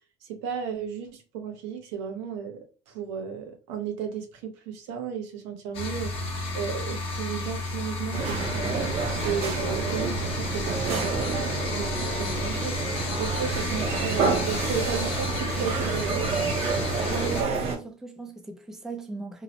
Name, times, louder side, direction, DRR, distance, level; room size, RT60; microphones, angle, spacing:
voice 1, 0.2-2.6 2.9-6.1 6.5-8.9 9.2-16.3, right 7 dB, 90° right, 0.7 m, -34 dB
sound 1, 5.7-17.4, left 2 dB, 45° left, 0.8 m, -32 dB
sound 2, 8.1-17.8, right 5 dB, 45° right, 0.7 m, -29 dB
sound 3, 11.0-11.4 12.0-12.4 13.0-13.4 14.0-14.4 15.0-15.4 16.0-16.4, left 9 dB, 75° left, 0.7 m, -42 dB
voice 2, 17.1-19.4, right 4 dB, 5° right, 0.4 m, -37 dB
2.8 x 2.0 x 2.7 m
cardioid pair, 130°, 14 cm